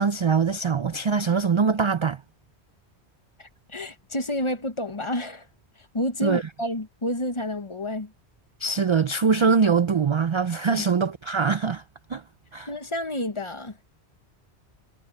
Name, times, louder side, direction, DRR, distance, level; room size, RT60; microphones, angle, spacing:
voice 1, 0.0-2.2 6.2-6.4 8.6-11.8 12.1-12.2 12.5-12.7, right 5 dB, 50° right, 0.3 m, -23 dB
voice 2, 3.4-5.5 5.9-8.1 10.7-10.9 12.7-13.8, left 1 dB, 30° left, 1.0 m, -30 dB
omnidirectional pair, 1.1 m